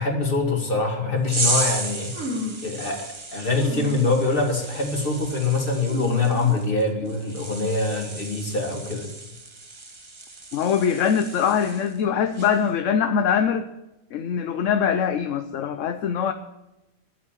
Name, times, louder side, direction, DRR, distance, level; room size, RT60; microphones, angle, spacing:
voice 1, 0.0-2.1 2.6-3.1 3.3-9.1, left 3 dB, 40° left, 2 dB, 2.5 m, -24 dB
sound 1, 1.3-12.0 12.3-12.7, right 3 dB, 20° right, 1.0 m, -33 dB
sound 2, 2.1-2.7 3.5-4.2 4.6-5.0 5.8-7.0, left 1 dB, 70° right, 4.6 m, -33 dB
voice 2, 10.5-13.7 14.1-16.3, left 7 dB, 65° left, 9 dB, 1.0 m, -23 dB
11.5 x 8.3 x 8.9 m, 0.97 s
omnidirectional pair, 1.5 m